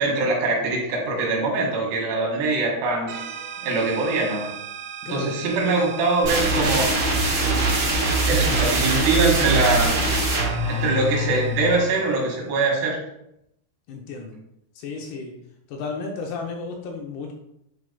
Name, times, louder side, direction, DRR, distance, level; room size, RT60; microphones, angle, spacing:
voice 1, 0.0-3.2 3.6-4.5 5.1-6.9 8.3-9.9 10.7-13.0, right 3 dB, 70° right, -1 dB, 3.5 m, -23 dB
sound 1, 3.1-12.5, right 8 dB, 85° right, 3.2 m, -38 dB
sound 2, 6.2-11.9, right 2 dB, 45° right, 3.5 m, -22 dB
voice 2, 13.9-14.4 14.8-15.3 15.7-17.3, left 4 dB, 75° left, 1 dB, 2.6 m, -33 dB
9.5 x 4.9 x 2.2 m, 0.79 s
omnidirectional pair, 5.1 m